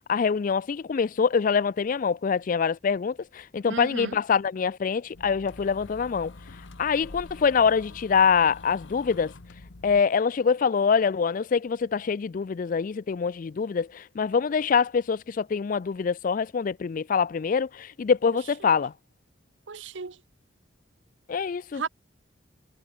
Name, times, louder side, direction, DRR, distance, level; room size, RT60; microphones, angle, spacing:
voice 1, 0.1-6.3 6.8-9.3 9.8-18.9 21.3-21.8, left 6 dB, 40° left, 0.3 m, -25 dB
voice 2, 3.7-4.2 18.6-18.7 19.7-20.2 21.7-21.9, right 4 dB, 65° right, 0.9 m, -35 dB
sound 1, 5.1-10.0, left 2 dB, 70° left, 1.1 m, -46 dB
head